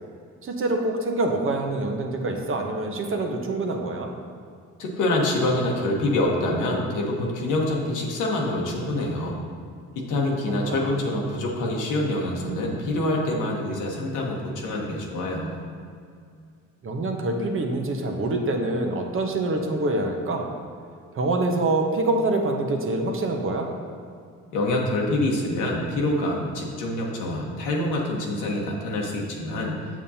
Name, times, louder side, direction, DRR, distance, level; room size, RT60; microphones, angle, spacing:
voice 1, 0.4-4.1 10.6-11.0 16.8-20.5 21.1-23.7, right 2 dB, 45° right, 3 dB, 0.9 m, -25 dB
voice 2, 4.8-9.4 9.9-15.6 24.5-29.8, left 1 dB, 85° left, -1 dB, 1.3 m, -26 dB
7.3 x 7.0 x 2.8 m, 2.3 s
cardioid pair, 90°, 30 cm